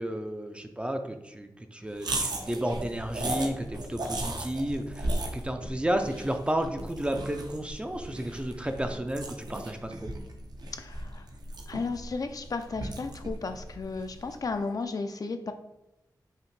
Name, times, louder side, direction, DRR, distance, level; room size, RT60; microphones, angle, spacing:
voice 1, 0.0-10.1, right 1 dB, 15° right, 6 dB, 0.4 m, -32 dB
sound 1, 2.0-14.5, right 1 dB, 65° right, 0.6 m, -36 dB
voice 2, 10.7-11.3 11.7-15.5, left 4 dB, 55° left, 7 dB, 0.4 m, -34 dB
5.7 x 2.1 x 3.1 m, 0.95 s
wide cardioid pair, 80°, 8 cm